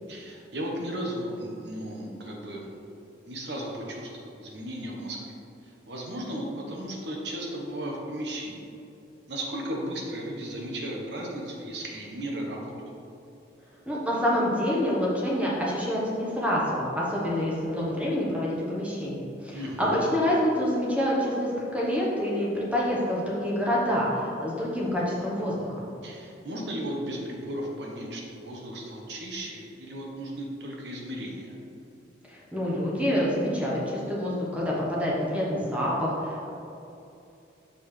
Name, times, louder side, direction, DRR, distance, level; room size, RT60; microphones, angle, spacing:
voice 1, 0.1-2.7 3.2-5.3 5.6-8.7 9.3-12.9 19.5-20.0 26.0-31.6, right 1 dB, 70° right, -1 dB, 1.1 m, -35 dB
voice 2, 13.9-25.8 32.3-36.5, equal, 5° right, -5 dB, 1.1 m, -27 dB
6.2 x 5.4 x 3.2 m, 2.7 s
head